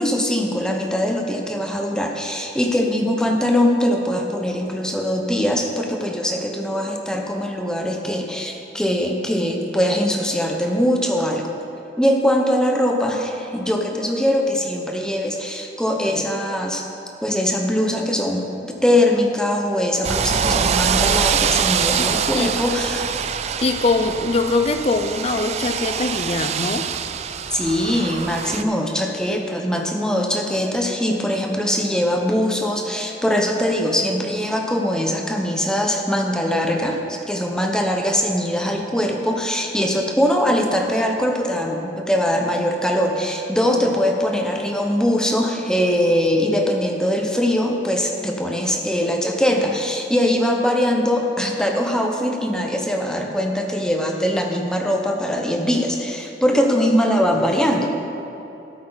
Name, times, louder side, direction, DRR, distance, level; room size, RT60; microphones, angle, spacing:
voice 1, 0.0-11.5 12.0-16.8 17.2-18.5 18.8-23.1 27.5-58.0, equal, 5° left, 1 dB, 0.9 m, -21 dB
sound 1, 20.0-28.6, right 7 dB, 35° right, 0.3 m, -24 dB
voice 2, 22.0-22.5 23.6-26.9, left 3 dB, 35° left, 8 dB, 0.5 m, -22 dB
13.5 x 8.2 x 4.0 m, 3.0 s
head